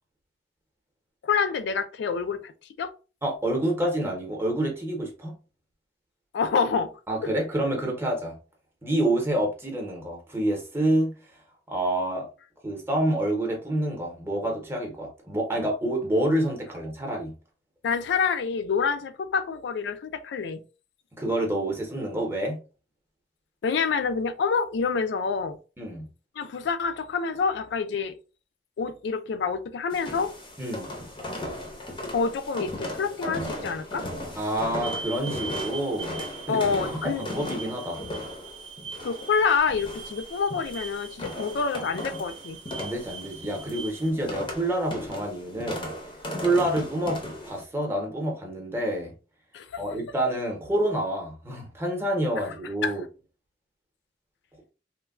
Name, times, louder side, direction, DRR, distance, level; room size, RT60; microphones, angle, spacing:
voice 1, 1.2-2.5 2.8-2.9 6.3-6.9 17.8-20.6 23.6-25.6 26.4-28.1 28.8-30.3 32.1-34.1 36.5-37.3 39.0-42.6 49.5-49.7 52.8-52.9, left 5 dB, 70° left, 0.3 m, -27 dB
voice 2, 3.2-5.3 7.1-8.3 8.8-11.1 11.7-12.3 12.6-17.3 21.2-22.6 25.8-26.0 30.6-30.9 34.3-36.2 36.5-38.0 42.8-45.9 46.3-49.1 49.8-53.0, right 1 dB, 15° right, 0.8 m, -28 dB
sound 1, 29.9-47.6, left 1 dB, 30° left, 0.6 m, -37 dB
sound 2, 34.8-44.1, right 5 dB, 70° right, 0.4 m, -41 dB
3.2 x 2.2 x 2.3 m
head